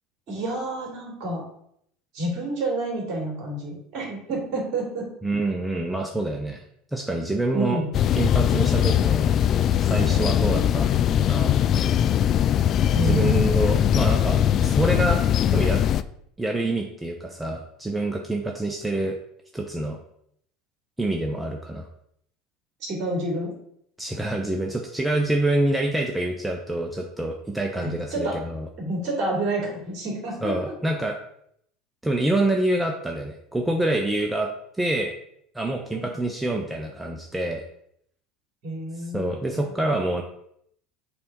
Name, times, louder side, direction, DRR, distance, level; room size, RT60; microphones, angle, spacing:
voice 1, 0.3-1.4 2.1-5.1 7.5-7.9 12.9-13.5 22.8-23.5 27.8-28.4 28.8-30.5 35.9-36.1 38.6-40.0, right 2 dB, 50° right, 0 dB, 2.7 m, -29 dB
voice 2, 5.2-6.6 6.9-7.8 8.2-9.3 9.8-10.9 11.3-11.5 13.0-15.2 15.5-15.8 16.4-19.2 19.5-20.0 21.0-21.9 24.0-28.7 30.4-31.2 32.0-34.5 34.8-35.1 35.5-37.6 39.0-40.2, right 1 dB, 10° right, 2 dB, 0.8 m, -26 dB
sound 1, 7.9-16.0, left 10 dB, 40° left, 0.3 m, -21 dB
6.9 x 3.5 x 5.3 m, 0.71 s
figure-of-eight pair, 70°, 0 cm